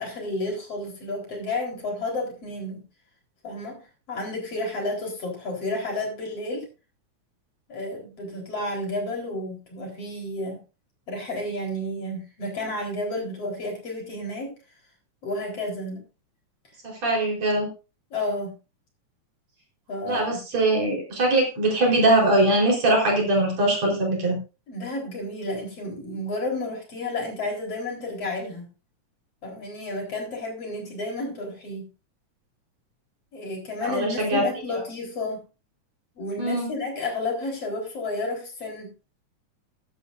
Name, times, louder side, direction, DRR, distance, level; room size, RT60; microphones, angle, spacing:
voice 1, 0.0-2.8 3.4-3.8 4.1-6.7 7.7-10.6 11.1-14.5 15.2-16.0 18.1-18.6 19.9-20.4 24.7-28.7 29.4-31.9 33.3-35.4 36.2-38.9, left 2 dB, 50° left, 0 dB, 5.1 m, -31 dB
voice 2, 16.8-17.7 20.1-24.4 33.8-34.4 34.7-34.8 36.4-36.7, right 1 dB, 55° right, -1 dB, 5.5 m, -22 dB
15.5 x 11.0 x 2.6 m, 0.32 s
omnidirectional pair, 3.5 m